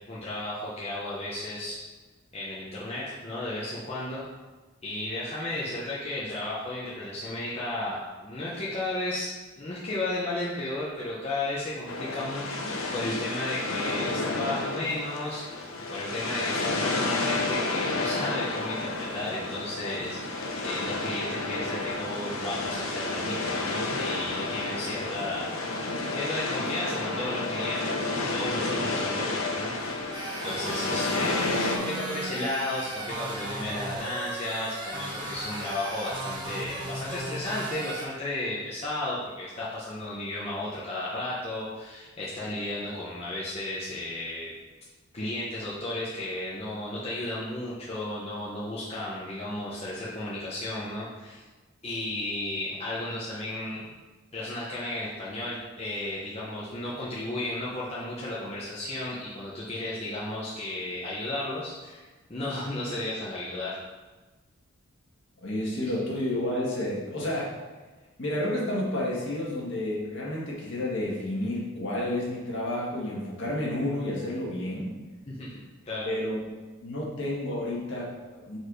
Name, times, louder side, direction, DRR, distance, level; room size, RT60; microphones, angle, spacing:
voice 1, 0.1-1.8 2.3-4.2 4.8-25.5 26.1-29.9 30.4-44.5 45.1-51.4 51.8-53.9 54.3-63.8 75.3-75.5 75.8-76.1, left 1 dB, 30° left, -7 dB, 0.9 m, -34 dB
sound 1, 11.9-31.8, left 2 dB, 80° left, 0.8 m, -31 dB
sound 2, 30.1-38.1, right 1 dB, 20° right, 1.1 m, -36 dB
voice 2, 65.4-67.5 68.2-74.9 76.0-76.4 76.8-78.6, left 1 dB, 55° left, -5 dB, 1.8 m, -30 dB
4.8 x 4.5 x 4.8 m, 1.3 s
head